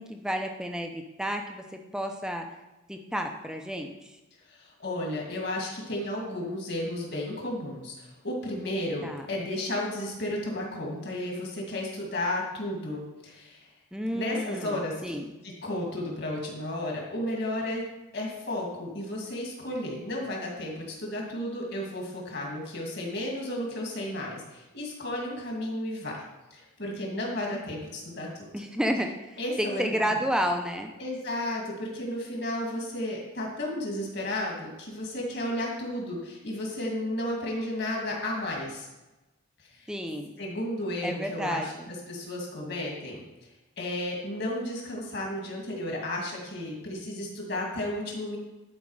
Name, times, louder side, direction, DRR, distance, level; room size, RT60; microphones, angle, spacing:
voice 1, 0.0-1.6 1.9-2.4 2.9-4.2 9.0-9.3 13.9-15.2 28.5-30.9 39.9-40.3 41.0-41.9, equal, 5° right, 4 dB, 0.6 m, -31 dB
voice 2, 4.5-13.7 14.1-15.2 15.6-17.8 18.1-26.2 26.5-28.3 29.4-29.9 31.0-38.9 39.6-39.9 40.4-43.2 43.8-48.4, left 1 dB, 50° left, -1 dB, 2.2 m, -33 dB
11.0 x 4.8 x 4.8 m, 1.1 s
head